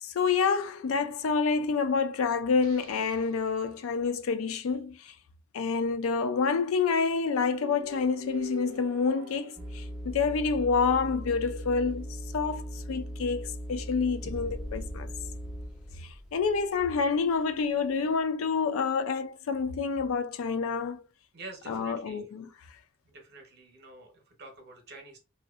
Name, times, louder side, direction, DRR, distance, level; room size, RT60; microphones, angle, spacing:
voice 1, 0.0-5.1 5.5-15.1 16.0-21.0 21.7-22.5, left 5 dB, 90° left, 0.4 m, -28 dB
sound 1, 2.6-3.9 7.6-10.3, right 3 dB, 85° right, 0.4 m, -47 dB
sound 2, 9.6-16.0, equal, 5° right, 0.5 m, -39 dB
sound 3, 14.2-18.2, equal, 55° left, 0.8 m, -45 dB
voice 2, 21.3-22.2 23.0-25.2, right 2 dB, 50° right, 0.8 m, -47 dB
2.7 x 2.1 x 2.3 m
head